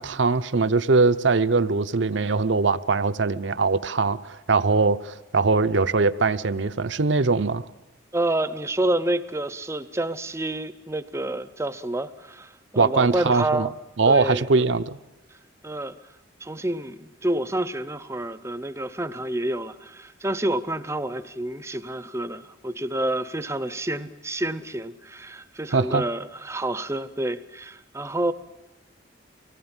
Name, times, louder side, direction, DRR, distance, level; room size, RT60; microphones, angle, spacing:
voice 1, 0.0-7.6 12.8-13.7 14.0-15.0 25.7-26.0, right 4 dB, 65° right, 12 dB, 0.7 m, -21 dB
voice 2, 8.1-13.7 14.1-14.5 15.6-16.0 16.4-28.3, right 1 dB, 15° right, 13 dB, 0.7 m, -28 dB
24.5 x 18.5 x 8.9 m, 1.1 s
head